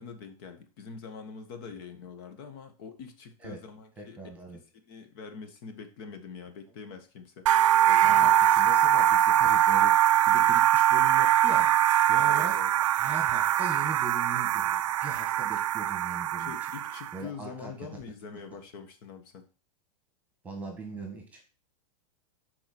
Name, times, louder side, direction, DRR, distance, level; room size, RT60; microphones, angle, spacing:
voice 1, 0.0-4.2 4.5-8.3 12.1-12.7 16.4-19.5, left 5 dB, 40° left, 8 dB, 1.4 m, -44 dB
voice 2, 4.0-4.6 8.0-9.9 10.2-11.7 12.1-12.5 12.9-16.5 17.1-17.9 20.4-21.5, right 3 dB, 5° right, 2 dB, 1.7 m, -40 dB
sound 1, 7.5-17.2, right 12 dB, 55° right, 0.5 m, -23 dB
11.5 x 4.6 x 4.4 m, 0.35 s
supercardioid pair, 170°, 19 cm